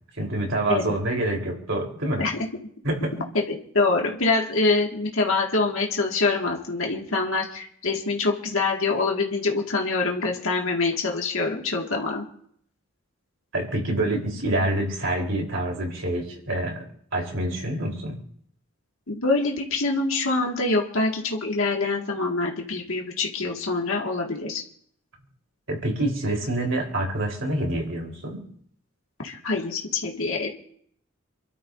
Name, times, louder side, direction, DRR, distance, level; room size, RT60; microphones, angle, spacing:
voice 1, 0.2-2.3 2.8-3.3 13.5-16.9 17.1-18.2 25.7-28.4, right 1 dB, 60° right, 0 dB, 3.9 m, -27 dB
voice 2, 3.3-12.2 19.1-24.6 29.2-30.5, left 3 dB, 70° left, 0 dB, 2.0 m, -25 dB
28.5 x 12.5 x 2.7 m, 0.66 s
head